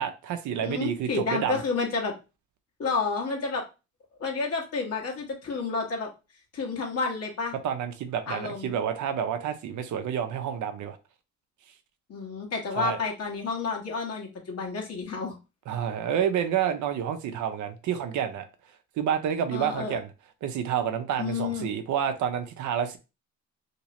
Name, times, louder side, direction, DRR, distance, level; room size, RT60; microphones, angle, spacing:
voice 1, 0.0-1.6 7.6-11.0 12.7-13.0 15.7-18.5 19.0-20.1 20.4-23.0, right 8 dB, 75° right, 0.6 m, -29 dB
voice 2, 0.6-2.1 2.8-3.6 4.2-6.1 6.5-7.5 8.3-8.7 12.1-15.4 19.5-20.0 21.2-21.7, left 4 dB, 55° left, 1.3 m, -30 dB
3.0 x 2.9 x 2.9 m
cardioid pair, 90°, 30 cm